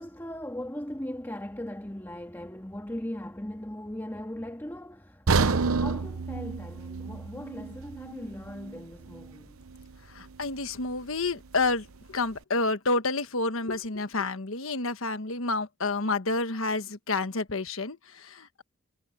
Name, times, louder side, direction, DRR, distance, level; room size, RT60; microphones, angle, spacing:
voice 1, 0.0-9.6, left 1 dB, 10° left, 1.8 m, -39 dB
sound 1, 5.3-9.3 9.7-9.8 10.4-10.5, right 4 dB, 75° right, 0.8 m, -29 dB
voice 2, 10.1-18.6, left 3 dB, 70° left, 1.4 m, -29 dB
head